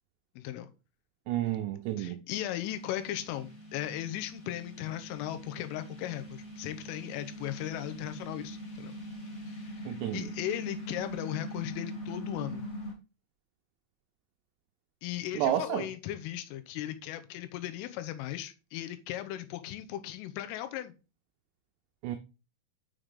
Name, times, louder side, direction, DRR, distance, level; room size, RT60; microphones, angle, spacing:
voice 1, 0.4-0.7 2.0-8.9 9.5-12.6 15.0-20.9, left 12 dB, 80° left, 3.4 m, -37 dB
voice 2, 1.3-2.2 9.9-10.3 15.3-15.9 22.0-22.2, right 12 dB, 85° right, 2.4 m, -31 dB
sound 1, 2.5-12.9, equal, 20° left, 2.0 m, -43 dB
6.8 x 6.6 x 3.7 m
omnidirectional pair, 5.8 m